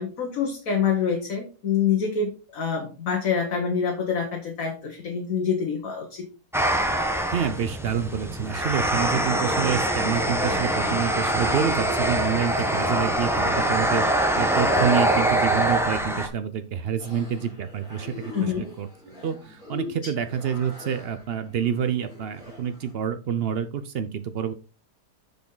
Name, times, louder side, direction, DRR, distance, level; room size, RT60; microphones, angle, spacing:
voice 1, 0.0-6.3 18.3-18.7 20.0-20.1, left 6 dB, 55° left, 1 dB, 1.7 m, -26 dB
sound 1, 6.5-16.3, right 1 dB, ahead, 0.6 m, -24 dB
voice 2, 7.3-14.1 14.4-18.9 19.2-24.5, right 8 dB, 80° right, 10 dB, 0.5 m, -28 dB
sound 2, 17.0-22.9, left 3 dB, 50° right, 3.9 m, -43 dB
7.0 x 6.0 x 3.8 m, 0.34 s
omnidirectional pair, 1.7 m